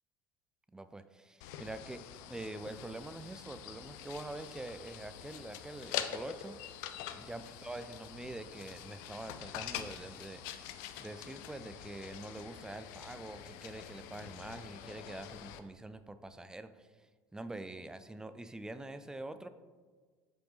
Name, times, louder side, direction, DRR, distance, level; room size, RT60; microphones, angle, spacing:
voice 1, 0.7-6.6 7.1-10.4 11.0-19.5, right 2 dB, 5° right, 11 dB, 0.4 m, -45 dB
sound 1, 1.4-15.6, left 10 dB, 55° left, 0.5 m, -45 dB
7.9 x 5.0 x 3.1 m, 1.5 s
figure-of-eight pair, 65°, 12 cm